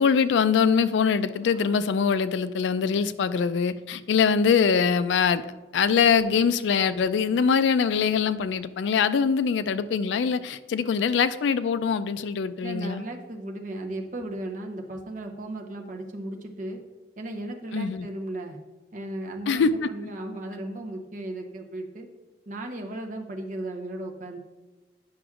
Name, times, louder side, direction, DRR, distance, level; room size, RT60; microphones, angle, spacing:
voice 1, 0.0-5.4 5.7-13.0 17.7-18.1 19.5-19.9, left 6 dB, 85° left, 13 dB, 0.3 m, -23 dB
voice 2, 12.6-16.8 17.2-18.6 18.9-22.1 22.5-24.4, right 1 dB, 45° right, 2 dB, 0.8 m, -36 dB
9.5 x 5.9 x 2.4 m, 1.2 s
head